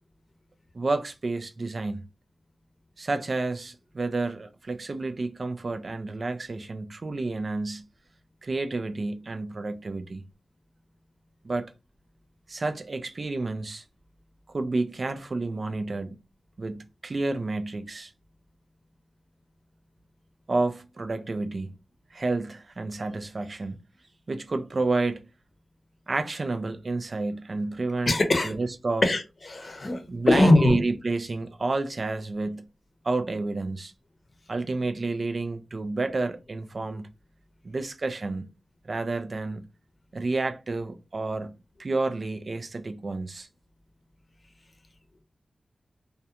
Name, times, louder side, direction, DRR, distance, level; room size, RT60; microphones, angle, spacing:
voice 1, 0.7-2.0 3.0-7.8 8.4-10.3 11.4-11.7 12.5-13.8 14.5-16.2 16.6-18.1 20.5-21.8 22.1-23.8 24.3-25.3 26.1-28.2 28.4-29.1 30.1-32.7 33.0-33.9 34.5-37.1 37.6-38.5 38.8-39.6 40.1-41.5 41.8-43.5, right 3 dB, 50° right, 0.3 m, -30 dB
voice 2, 28.1-28.5 29.0-29.2 29.5-30.0 30.3-30.8, left 2 dB, 45° left, 0.7 m, -20 dB
2.4 x 2.2 x 2.8 m
wide cardioid pair, 65°, 0 cm